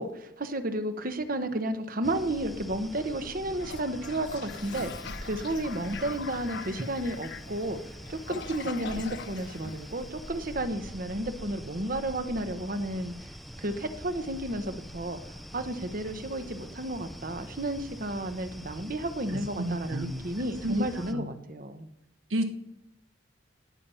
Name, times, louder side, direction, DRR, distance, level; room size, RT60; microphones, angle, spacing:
voice 1, 0.0-13.3 13.6-15.2 15.5-21.9, right 1 dB, 45° right, 9 dB, 1.1 m, -32 dB
sound 1, 2.0-21.1, equal, ahead, 0.5 m, -44 dB
Toilet flush, 3.5-10.5, left 5 dB, 55° left, 0.6 m, -42 dB
voice 2, 19.3-20.2 20.6-21.3 22.3-22.6, right 1 dB, 80° right, 7 dB, 1.3 m, -32 dB
17.5 x 8.8 x 5.6 m, 0.86 s
head